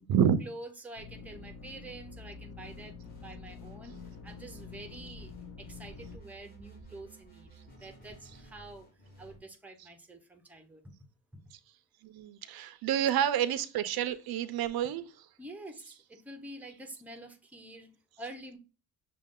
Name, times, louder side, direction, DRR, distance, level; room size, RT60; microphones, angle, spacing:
voice 1, 0.4-2.9 3.2-5.3 5.6-7.5 7.8-8.9 9.2-10.9 11.3-11.4 15.4-18.6, right 2 dB, 5° right, 0.6 m, -47 dB
sound 1, 1.0-6.2, left 5 dB, 45° left, 0.7 m, -47 dB
sound 2, 2.5-9.4, right 2 dB, 25° left, 1.7 m, -55 dB
voice 2, 12.0-15.3, right 9 dB, 85° right, 0.5 m, -29 dB
6.3 x 2.3 x 3.6 m
wide cardioid pair, 155°, 36 cm